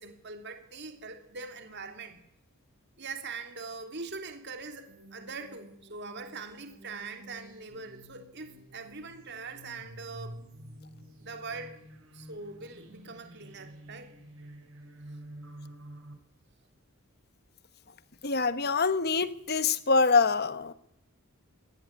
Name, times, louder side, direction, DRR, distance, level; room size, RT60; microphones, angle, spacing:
voice 1, 0.0-2.2 3.0-10.4 11.2-11.8 12.1-14.1, right 4 dB, 50° right, 6 dB, 3.1 m, -42 dB
sound 1, 4.8-16.1, right 1 dB, 65° right, 5.5 m, -50 dB
voice 2, 18.2-20.7, left 4 dB, 45° left, 14 dB, 1.2 m, -25 dB
19.5 x 18.0 x 9.7 m, 0.75 s
head